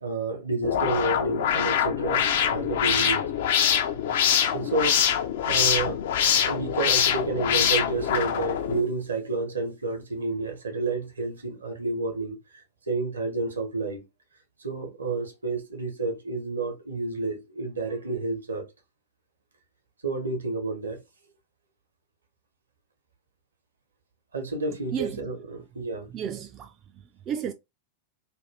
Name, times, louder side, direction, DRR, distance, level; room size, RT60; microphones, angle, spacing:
voice 1, 0.0-3.3 4.5-5.0 5.4-14.0 14.6-18.7 20.0-21.0 24.3-26.1, right 3 dB, 75° right, 0.8 m, -30 dB
sound 1, 0.6-8.8, left 8 dB, 55° left, 0.4 m, -24 dB
voice 2, 24.9-25.2 26.1-27.5, right 8 dB, 30° right, 0.3 m, -33 dB
2.6 x 2.3 x 3.3 m
figure-of-eight pair, 90°, 0 cm